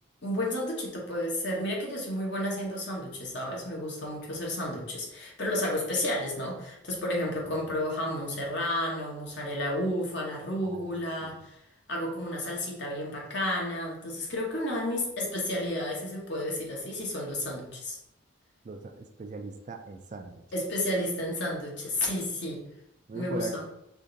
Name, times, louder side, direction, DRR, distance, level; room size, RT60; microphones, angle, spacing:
voice 1, 0.2-11.6 11.9-18.0 20.5-22.6 23.1-23.6, left 1 dB, 55° left, -2 dB, 1.1 m, -32 dB
voice 2, 18.6-20.4 23.1-23.6, right 3 dB, 35° right, 6 dB, 0.3 m, -39 dB
5.1 x 2.5 x 3.9 m, 0.83 s
head